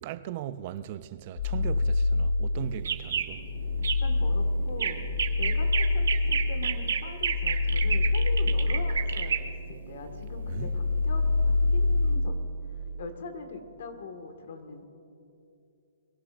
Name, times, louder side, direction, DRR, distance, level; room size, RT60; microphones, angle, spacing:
voice 1, 0.0-3.4 10.5-10.8, right 12 dB, 25° right, 0.4 m, -38 dB
sound 1, 1.4-2.8 3.2-9.7 10.0-12.3, left 3 dB, 75° left, 1.0 m, -27 dB
sound 2, 2.6-12.1, right 7 dB, 75° right, 1.5 m, -32 dB
voice 2, 3.6-5.0 5.4-12.5 13.0-14.9, left 3 dB, 50° left, 1.6 m, -42 dB
22.5 x 17.5 x 2.5 m
hypercardioid pair, 175°, 0 cm